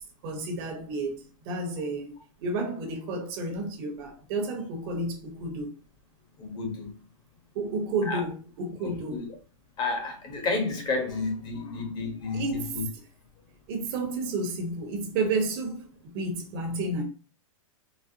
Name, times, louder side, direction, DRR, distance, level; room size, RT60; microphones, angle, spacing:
voice 1, 0.2-2.1 2.4-5.7 7.5-9.2 12.3-12.9 13.7-15.9 16.1-17.0, right 2 dB, 45° right, 0.9 m, -31 dB
voice 2, 6.4-6.9 8.1-8.2 9.1-9.3 9.8-12.4 12.8-12.9, left 3 dB, 25° left, 0.9 m, -30 dB
4.0 x 2.0 x 2.7 m
hypercardioid pair, 145°, 18 cm